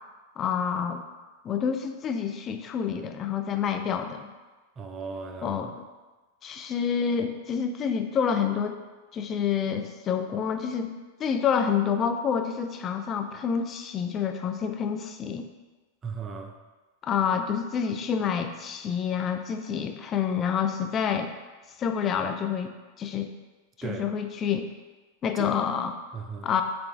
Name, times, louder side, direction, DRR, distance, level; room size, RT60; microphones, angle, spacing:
voice 1, 0.4-1.0 1.4-4.3 5.4-5.8 6.4-8.8 9.1-10.9 11.2-15.4 17.0-21.3 21.8-22.7 23.0-23.3 23.8-24.7 25.2-25.9 26.4-26.6, left 7 dB, 35° left, 6 dB, 0.3 m, -28 dB
voice 2, 4.8-5.6 16.0-16.6 23.8-24.1 25.4-25.6 26.1-26.5, right 5 dB, 30° right, 5 dB, 0.4 m, -37 dB
6.7 x 2.3 x 2.5 m, 1.2 s
hypercardioid pair, 100°, 0 cm